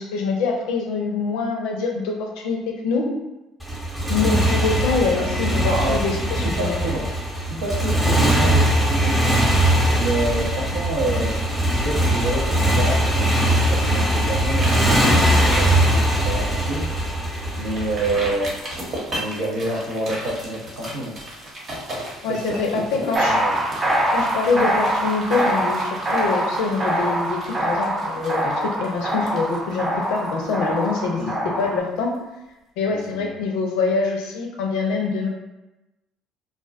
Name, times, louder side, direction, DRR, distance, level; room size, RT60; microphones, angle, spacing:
voice 1, 0.0-3.1 4.1-6.8 22.2-23.4 24.1-28.5 28.8-31.2 31.6-32.1 32.8-35.3, left 4 dB, 70° left, 1 dB, 0.5 m, -24 dB
Motorcycle, 3.6-18.8, right 1 dB, 5° left, 0.8 m, -20 dB
voice 2, 5.3-7.1 7.5-9.5 9.9-11.4 11.8-16.9 17.6-18.5 19.1-21.2 22.3-22.6 23.1-23.6 31.2-31.6 32.9-33.3, right 2 dB, 80° right, -4 dB, 0.7 m, -28 dB
sound 1, 14.6-14.8 15.1-15.9 16.3-16.4 16.8-16.9 17.7-31.3 31.6-31.7, right 1 dB, 45° right, 0.9 m, -36 dB
sound 2, 23.1-31.8, right 1 dB, 25° right, 0.5 m, -24 dB
2.4 x 2.1 x 2.4 m, 1.0 s
hypercardioid pair, 60°, 0 cm